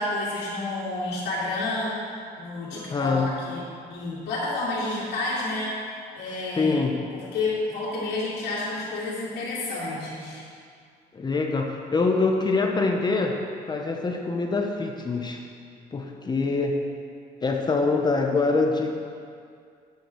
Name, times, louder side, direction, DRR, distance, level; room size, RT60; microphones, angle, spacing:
voice 1, 0.0-2.0 2.4-3.6 3.9-5.8 6.1-6.8 7.1-10.4, left 2 dB, 75° left, -10 dB, 2.5 m, -30 dB
voice 2, 2.7-3.3 6.6-7.0 11.1-13.4 13.7-15.4 15.9-16.8 17.4-18.9, left 3 dB, 25° left, 2 dB, 0.8 m, -24 dB
9.1 x 4.8 x 6.8 m, 2.2 s
cardioid pair, 110°, 17 cm